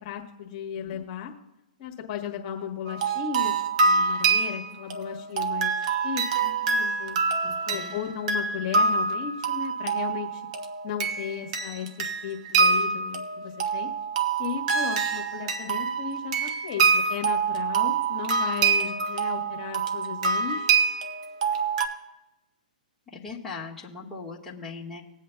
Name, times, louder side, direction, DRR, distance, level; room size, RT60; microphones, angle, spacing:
voice 1, 0.0-1.3 1.8-7.2 7.7-10.4 10.8-13.9 14.4-20.7, left 8 dB, 45° left, 1 dB, 1.5 m, -35 dB
voice 2, 0.7-1.1 7.4-8.0 23.1-25.0, left 4 dB, 10° left, -6 dB, 1.6 m, -40 dB
sound 1, 2.9-21.9, right 5 dB, 55° right, 1.3 m, -26 dB
20.5 x 8.3 x 2.3 m, 0.96 s
hypercardioid pair, 140°, 5 cm